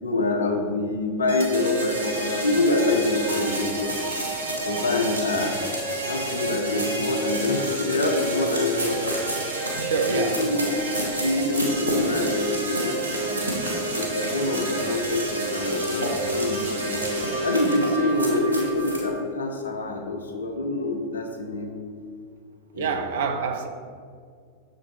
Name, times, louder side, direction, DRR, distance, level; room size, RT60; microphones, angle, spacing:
voice 1, 0.0-5.6 6.0-9.3 10.1-10.7 11.2-13.5 13.9-17.1 17.4-21.7 22.7-23.0, left 2 dB, 70° left, 0.8 m, -26 dB
sound 1, 1.3-19.2, right 1 dB, 75° right, 1.3 m, -30 dB
sound 2, 3.3-19.1, right 1 dB, 90° left, 1.6 m, -33 dB
voice 2, 9.8-10.4 22.8-23.7, right 5 dB, 60° right, 0.8 m, -26 dB
6.4 x 6.4 x 4.6 m
figure-of-eight pair, 90°, 0 cm